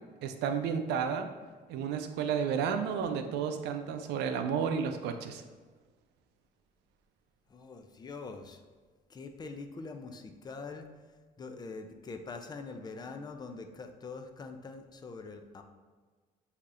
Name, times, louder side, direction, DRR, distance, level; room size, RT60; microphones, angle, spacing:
voice 1, 0.2-1.3 1.7-5.4, right 7 dB, 85° right, 7 dB, 0.5 m, -32 dB
voice 2, 7.5-8.6 9.1-10.9 11.4-15.6, left 4 dB, 25° left, 6 dB, 0.4 m, -44 dB
6.5 x 2.8 x 2.5 m, 1.4 s
cardioid pair, 110°, 17 cm